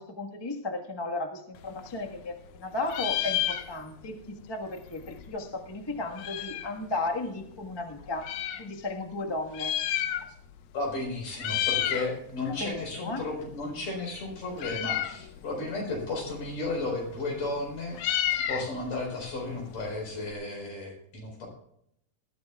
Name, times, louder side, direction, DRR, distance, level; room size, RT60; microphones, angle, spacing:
voice 1, 0.0-8.3 8.6-9.7 11.7-11.9 12.5-13.2, left 2 dB, 25° left, 2 dB, 0.5 m, -35 dB
Meow, 1.6-2.6 2.8-4.1 4.4-4.5 4.7-6.8 7.4-8.6 9.4-10.6 10.9-11.1 11.3-12.1 12.5-20.3, left 12 dB, 85° left, 2.2 m, -32 dB
voice 2, 10.7-18.0 18.5-21.5, left 2 dB, 70° left, 1 dB, 5.9 m, -34 dB
20.0 x 14.0 x 2.4 m, 0.73 s
omnidirectional pair, 3.3 m